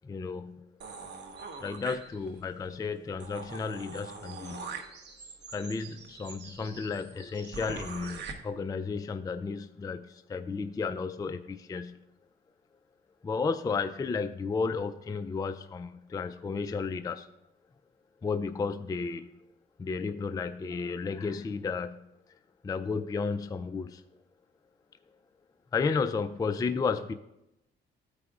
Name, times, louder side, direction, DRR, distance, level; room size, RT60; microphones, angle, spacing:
voice 1, 0.0-0.6 1.6-4.7 5.5-12.0 13.2-17.3 18.2-19.3 19.8-22.0 22.6-24.0 25.7-27.1, left 4 dB, 20° left, 8 dB, 0.3 m, -33 dB
sound 1, 0.8-2.5 2.9-3.0 3.2-8.3, right 5 dB, 60° right, 1.0 m, -43 dB
14.5 x 4.9 x 2.4 m, 0.89 s
cardioid pair, 90°, 20 cm